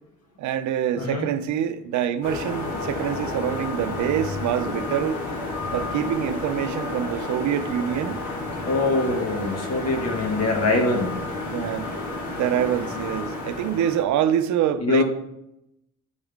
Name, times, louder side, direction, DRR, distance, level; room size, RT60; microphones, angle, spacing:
voice 1, 0.4-5.2 5.7-8.2 11.4-11.9 12.3-15.0, right 10 dB, 70° right, 0.5 m, -25 dB
voice 2, 1.0-1.3 8.7-11.1 14.8-15.0, left 2 dB, 55° left, 1.5 m, -23 dB
sound 1, 2.2-14.0, left 2 dB, 80° left, 1.6 m, -31 dB
9.6 x 3.6 x 3.5 m
cardioid pair, 90°, 30 cm